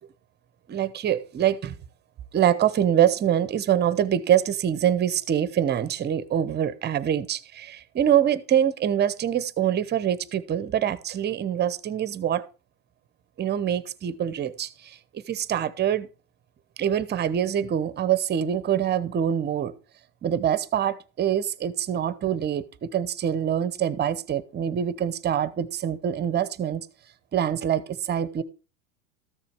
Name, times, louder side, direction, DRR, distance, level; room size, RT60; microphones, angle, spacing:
voice 1, 0.7-1.8 2.3-12.4 13.4-15.0 15.3-16.1 16.8-19.7 20.2-26.9 27.3-28.4, right 10 dB, 25° right, 0.8 m, -25 dB
14.0 x 6.9 x 4.6 m
hypercardioid pair, 115°, 45 cm